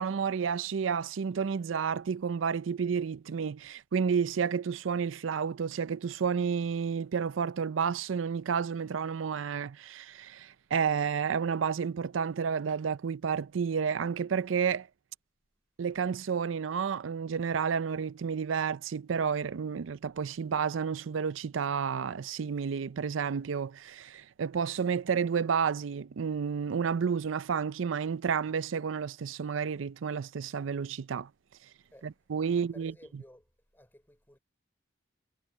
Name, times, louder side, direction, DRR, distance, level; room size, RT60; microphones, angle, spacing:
voice 1, 0.0-14.9 15.8-31.3 32.0-32.9, right 6 dB, 85° right, 0.5 m, -31 dB
voice 2, 32.4-34.4, left 1 dB, 10° left, 3.1 m, -56 dB
head